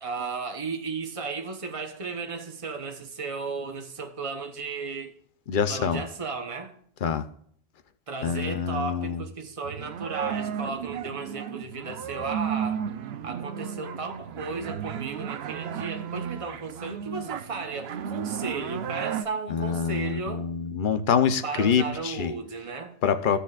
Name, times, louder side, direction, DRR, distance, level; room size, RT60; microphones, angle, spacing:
voice 1, 0.0-5.1 5.7-6.8 8.1-12.8 13.2-20.5 21.4-23.0, right 4 dB, 30° right, 1.1 m, -34 dB
voice 2, 5.5-6.0 7.0-7.3 8.2-9.2 19.5-22.3 23.0-23.4, left 7 dB, 55° left, 0.9 m, -25 dB
sound 1, 9.6-19.3, right 8 dB, 75° right, 0.9 m, -34 dB
16.0 x 6.8 x 2.4 m
omnidirectional pair, 1.1 m